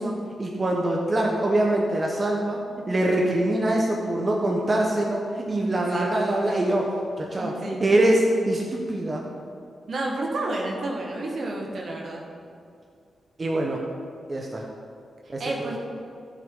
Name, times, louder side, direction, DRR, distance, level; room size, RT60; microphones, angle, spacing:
voice 1, 0.0-7.5 7.8-9.2 13.4-13.8 14.3-14.6 15.3-15.4, right 1 dB, 40° right, -1 dB, 1.3 m, -24 dB
voice 2, 5.8-6.1 7.4-7.8 9.9-12.2 15.4-15.8, right 2 dB, 65° right, -1 dB, 1.7 m, -30 dB
12.0 x 7.6 x 4.0 m, 2.3 s
supercardioid pair, 40°, 0 cm